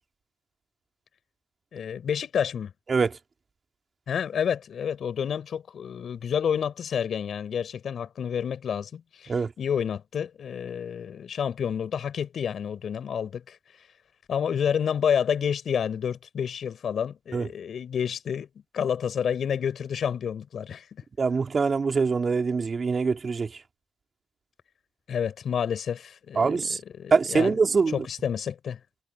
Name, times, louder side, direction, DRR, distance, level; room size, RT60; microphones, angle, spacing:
voice 1, 1.7-2.7 4.1-13.6 14.3-18.5 18.7-20.9 25.1-26.6 27.0-27.6 27.9-28.8, left 8 dB, 55° left, 5.6 m, -29 dB
voice 2, 21.2-23.5 26.4-26.8 27.1-28.0, right 4 dB, 35° right, 2.7 m, -24 dB
cardioid pair, 90°, 0 cm